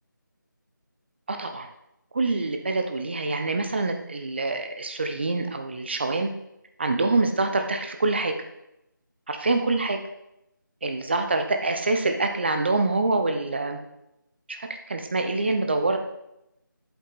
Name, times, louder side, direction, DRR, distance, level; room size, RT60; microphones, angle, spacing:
voice 1, 1.3-1.7 2.1-6.3 6.8-8.3 9.3-10.0 10.8-13.8 14.5-14.6 14.9-16.0, right 3 dB, 30° right, 6 dB, 0.8 m, -25 dB
8.2 x 7.6 x 4.0 m, 0.86 s
figure-of-eight pair, 165°, 11 cm